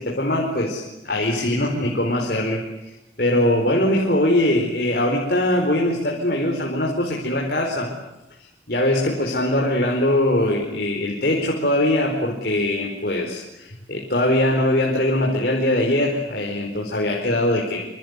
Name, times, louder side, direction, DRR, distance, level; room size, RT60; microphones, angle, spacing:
voice 1, 0.0-7.9 8.7-17.8, left 1 dB, 55° left, 0 dB, 4.7 m, -22 dB
27.0 x 26.5 x 8.2 m, 0.97 s
head